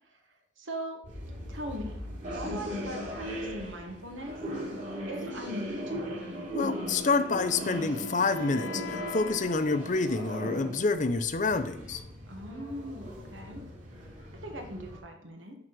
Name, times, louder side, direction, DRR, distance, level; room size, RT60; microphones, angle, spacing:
voice 1, 0.6-1.0 1.5-4.4 5.1-6.2 12.3-13.6 14.3-15.6, equal, 90° right, 3 dB, 1.8 m, -40 dB
sound 1, 1.0-15.0, equal, 40° right, 2.9 m, -38 dB
voice 2, 6.5-12.0, left 3 dB, 40° left, 10 dB, 0.6 m, -28 dB
Wind instrument woodwind instrument, 7.0-10.6, left 4 dB, 85° left, 0.9 m, -43 dB
10.5 x 3.9 x 6.1 m, 0.72 s
head